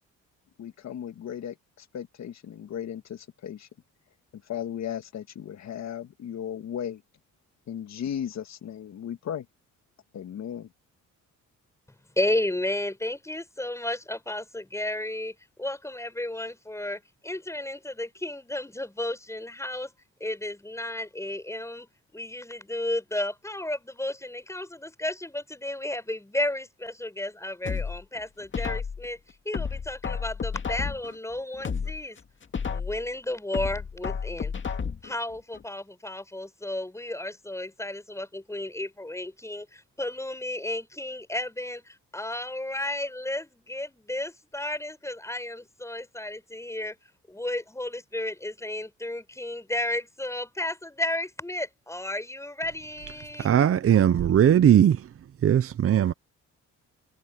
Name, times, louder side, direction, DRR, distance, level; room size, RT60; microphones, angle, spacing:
voice 1, 0.6-3.7 4.5-7.0 7.7-9.5 10.1-10.7, left 9 dB, 65° left, 1.9 m, -36 dB
voice 2, 11.9-19.9 20.2-32.2 32.6-34.8 35.0-47.0 47.3-53.5, left 1 dB, 10° left, 5.9 m, -33 dB
sound 1, 27.6-29.1 29.5-31.1 31.5-33.1 33.5-35.1 35.5-35.6, left 6 dB, 40° left, 2.2 m, -32 dB
voice 3, 53.4-55.1 55.4-56.1, right 10 dB, 50° right, 0.8 m, -19 dB
cardioid pair, 90°, 30 cm